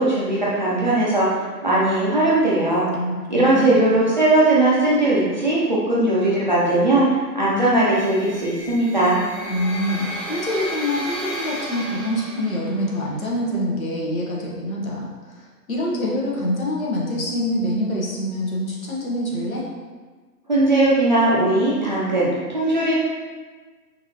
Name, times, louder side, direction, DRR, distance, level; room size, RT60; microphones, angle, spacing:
voice 1, 0.0-2.9 3.3-7.0 7.3-9.2 20.5-23.0, right 2 dB, 30° right, -8 dB, 0.6 m, -19 dB
voice 2, 2.9-3.9 9.5-19.7, left 1 dB, 55° left, -3 dB, 1.3 m, -25 dB
sound 1, 7.9-13.0, equal, 20° left, 0.5 m, -33 dB
5.7 x 2.7 x 3.0 m, 1.4 s
figure-of-eight pair, 145°, 50 cm